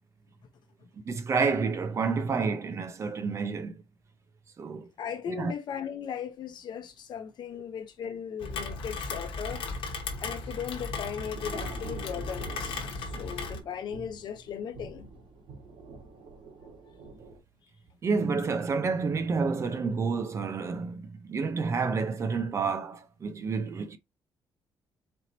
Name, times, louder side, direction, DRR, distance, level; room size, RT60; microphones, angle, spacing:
voice 1, 1.1-3.7 4.6-4.9 5.3-5.5 18.0-24.0, right 4 dB, 35° right, 0.5 m, -29 dB
voice 2, 5.0-9.7 10.2-15.1, left 8 dB, 55° left, 0.8 m, -37 dB
Rain, 8.4-13.6, left 4 dB, 80° left, 1.0 m, -36 dB
Thunder / Rain, 10.0-17.4, right 3 dB, 80° right, 2.0 m, -46 dB
4.3 x 2.9 x 4.0 m
cardioid pair, 170°, 9 cm